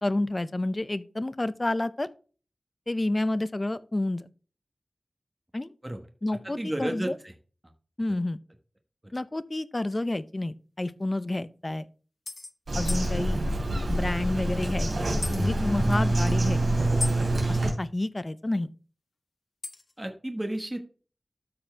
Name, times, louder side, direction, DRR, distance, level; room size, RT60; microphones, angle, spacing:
voice 1, 0.0-2.1 2.9-4.3 5.5-5.7 6.2-7.1 8.0-8.4 9.1-11.9 12.7-13.4 13.9-16.6 17.5-18.7, left 2 dB, 30° left, 0.6 m, -29 dB
voice 2, 6.4-7.3 8.1-8.2 9.0-9.1 20.0-20.8, right 1 dB, 15° right, 1.2 m, -32 dB
sound 1, 9.9-10.0 11.0-11.1 11.4-11.5 12.3-12.5 12.9-13.1 15.2-15.5 17.0-17.2 19.6-19.9, left 3 dB, 60° left, 0.8 m, -35 dB
Bird vocalization bird call bird song, 12.7-17.7, right 1 dB, 90° right, 2.9 m, -26 dB
13.0 x 4.3 x 3.4 m
wide cardioid pair, 75°, 0 cm